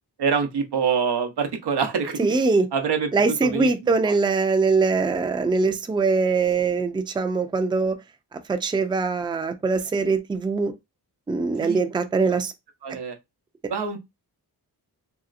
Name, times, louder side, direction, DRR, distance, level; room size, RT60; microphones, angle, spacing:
voice 1, 0.2-2.3 2.7-3.1 3.4-4.2 11.6-11.8 12.2-12.3 12.8-13.2 13.7-14.0, right 6 dB, 90° right, 0.8 m, -25 dB
voice 2, 2.2-2.7 3.1-8.0 8.3-10.7 11.3-12.5, right 4 dB, 15° right, 0.3 m, -22 dB
3.1 x 2.8 x 2.4 m
wide cardioid pair, 115°, 39 cm